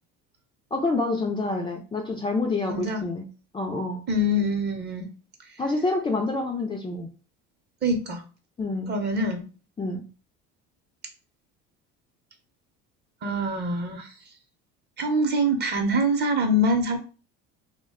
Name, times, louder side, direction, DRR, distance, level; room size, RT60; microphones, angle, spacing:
voice 1, 0.7-3.2 3.5-4.0 5.6-7.1 8.6-8.9 9.8-10.0, left 3 dB, 15° left, 1 dB, 0.4 m, -27 dB
voice 2, 2.7-3.1 4.1-5.1 7.8-8.2 8.9-9.4 13.2-14.1 15.0-17.0, equal, 35° right, 5 dB, 0.7 m, -24 dB
2.4 x 2.2 x 3.5 m, 0.34 s
supercardioid pair, 110°, 30 cm